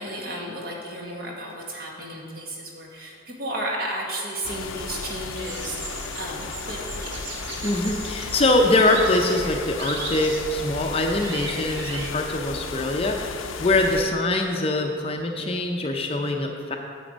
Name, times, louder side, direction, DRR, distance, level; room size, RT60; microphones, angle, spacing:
voice 1, 0.0-7.1 13.9-14.1, right 1 dB, 50° right, -1 dB, 1.6 m, -33 dB
sound 1, 4.4-14.0, left 4 dB, 85° left, 0.6 m, -35 dB
sound 2, 5.4-12.1, right 3 dB, 65° right, 1.3 m, -37 dB
voice 2, 7.6-16.8, left 2 dB, 30° left, 3 dB, 0.6 m, -23 dB
8.8 x 7.0 x 5.1 m, 2.4 s
head